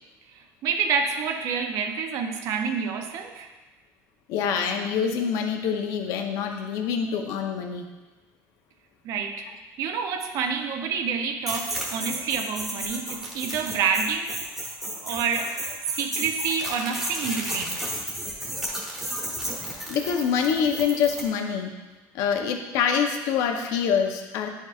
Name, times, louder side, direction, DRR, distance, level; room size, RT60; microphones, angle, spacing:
voice 1, 0.6-3.5 9.0-9.4 9.8-14.4 15.0-17.8, right 6 dB, 55° right, 5 dB, 0.6 m, -28 dB
voice 2, 4.3-7.9 19.9-21.7 22.1-24.5, left 7 dB, 70° left, 4 dB, 0.7 m, -25 dB
sound 1, 11.5-21.3, equal, 5° right, 1.1 m, -33 dB
10.5 x 4.5 x 2.4 m, 1.2 s
cardioid pair, 165°, 6 cm